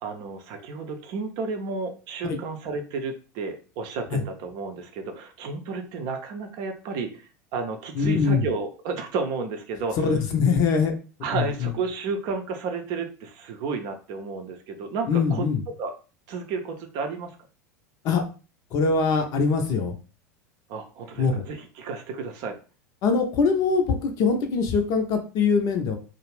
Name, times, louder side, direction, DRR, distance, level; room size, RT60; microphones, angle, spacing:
voice 1, 0.0-10.1 11.2-15.9 16.3-17.3 20.7-22.6, right 4 dB, 45° right, 5 dB, 0.5 m, -32 dB
voice 2, 8.0-8.4 10.0-10.9 11.3-11.7 15.1-15.6 18.0-18.2 18.7-20.0 21.2-21.4 23.0-26.0, left 5 dB, 40° left, 5 dB, 0.6 m, -23 dB
2.4 x 2.0 x 3.2 m, 0.35 s
figure-of-eight pair, 80°, 9 cm